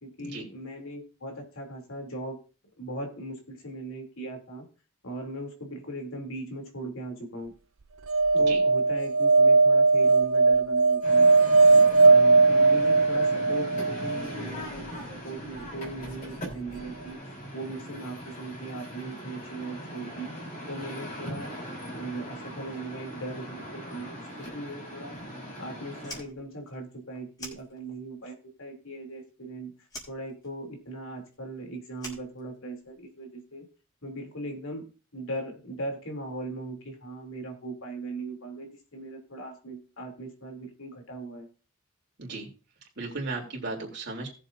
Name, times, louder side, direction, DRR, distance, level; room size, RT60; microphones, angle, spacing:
voice 1, 0.0-2.4 2.8-4.6 5.0-7.5 8.3-11.3 11.7-20.3 20.7-21.5 21.9-25.2 25.6-29.7 30.1-33.7 34.0-41.5, right 1 dB, 80° left, 2 dB, 3.0 m, -39 dB
sound 1, 8.1-14.2 16.5-16.6 16.8-16.9, right 3 dB, 80° right, 0.6 m, -19 dB
sound 2, 11.0-26.2, equal, 35° left, 3.8 m, -40 dB
Fire, 26.0-28.2 28.5-29.5 29.8-33.0, left 1 dB, 20° left, 3.4 m, -46 dB
voice 2, 43.0-44.3, right 3 dB, 55° right, 0 dB, 3.2 m, -35 dB
18.0 x 7.3 x 2.6 m, 0.34 s
head